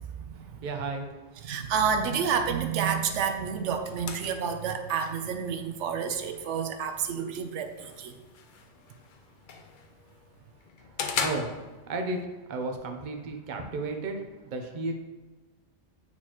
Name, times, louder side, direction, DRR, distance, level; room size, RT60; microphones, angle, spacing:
voice 1, 0.3-1.6 10.8-12.2 12.5-14.9, right 3 dB, 45° right, 3 dB, 0.8 m, -34 dB
voice 2, 1.4-8.2, right 6 dB, 90° right, 7 dB, 0.9 m, -29 dB
sound 1, 3.2-12.2, left 5 dB, 55° left, 0.6 m, -40 dB
8.5 x 4.4 x 2.9 m, 1.2 s
omnidirectional pair, 1.2 m